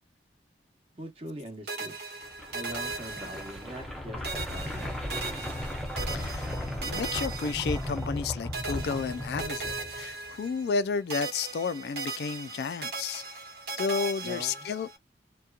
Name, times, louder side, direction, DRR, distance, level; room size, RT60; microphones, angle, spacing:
voice 1, 0.9-2.0 2.5-4.9 14.2-14.7, right 1 dB, 35° right, 1.0 m, -42 dB
sound 1, 1.7-4.0 4.2-8.2 8.5-10.8 11.1-15.0, right 3 dB, 60° right, 1.2 m, -38 dB
sound 2, 2.3-10.3, left 1 dB, ahead, 0.5 m, -36 dB
voice 2, 6.1-6.5 6.8-13.2 13.8-14.9, left 5 dB, 60° left, 0.3 m, -32 dB
2.8 x 2.2 x 2.3 m
head